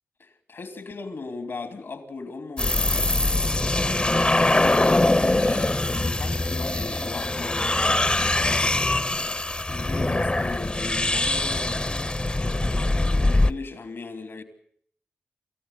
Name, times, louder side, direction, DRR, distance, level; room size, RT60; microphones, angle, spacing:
voice 1, 0.2-8.8 9.7-14.4, left 4 dB, 75° left, 2.9 m, -38 dB
sound 1, 2.6-13.5, left 2 dB, 25° left, 0.8 m, -23 dB
28.0 x 14.5 x 8.2 m
cardioid pair, 40°, 4 cm